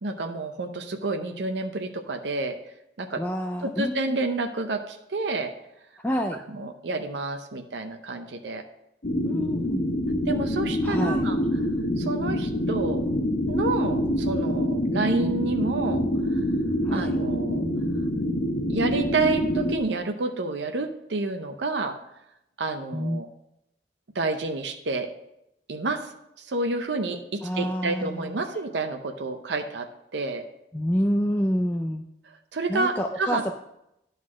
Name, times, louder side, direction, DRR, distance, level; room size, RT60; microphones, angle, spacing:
voice 1, 0.0-2.6 3.0-3.2 3.6-5.5 6.3-8.6 10.3-11.4 12.0-13.0 13.5-16.4 16.9-17.6 18.7-22.0 22.6-23.3 24.1-25.1 25.7-26.1 26.4-30.4 32.3-33.4, right 3 dB, 80° right, 6 dB, 0.6 m, -29 dB
voice 2, 3.2-4.2 6.0-6.4 9.2-9.9 10.8-11.2 16.8-17.2 22.9-23.2 27.4-28.4 30.7-32.0 32.7-33.5, equal, 10° left, 3 dB, 0.3 m, -28 dB
sound 1, 9.0-19.8, equal, 55° left, 0.9 m, -26 dB
9.6 x 4.0 x 6.1 m, 0.82 s
head